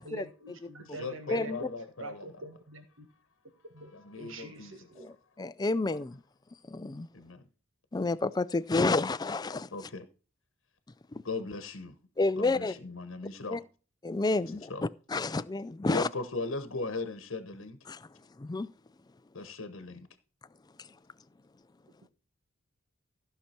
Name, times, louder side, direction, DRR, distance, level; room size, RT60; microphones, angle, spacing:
voice 1, 0.0-1.7 2.0-3.1 3.7-5.1, right 2 dB, 70° right, 1.8 m, -45 dB
voice 2, 0.8-2.4 3.8-5.0 5.9-6.0 7.1-7.5 9.7-10.1 11.2-12.0 12.4-13.6 14.4-14.8 15.9-17.8 19.3-20.1, left 3 dB, 70° left, 1.1 m, -38 dB
voice 3, 1.3-1.7 5.0-6.2 6.6-7.1 7.9-9.7 11.1-11.2 12.2-12.7 13.5-13.6 14.0-16.1 17.9-18.1 18.4-18.7 20.8-21.0, left 3 dB, 20° left, 0.4 m, -30 dB
15.0 x 5.9 x 4.4 m
head